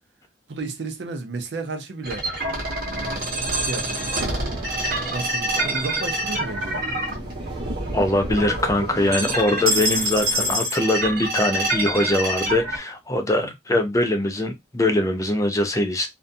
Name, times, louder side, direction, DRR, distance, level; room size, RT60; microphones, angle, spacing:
voice 1, 0.5-2.3 2.8-4.4 5.1-7.1 13.4-13.5, right 3 dB, 75° right, 0.6 m, -33 dB
sound 1, 2.0-12.8, right 1 dB, 55° right, 1.0 m, -26 dB
sound 2, 2.9-10.5, right 2 dB, 25° right, 0.7 m, -37 dB
voice 2, 7.9-16.1, left 1 dB, 20° left, 0.4 m, -22 dB
2.5 x 2.2 x 2.6 m
head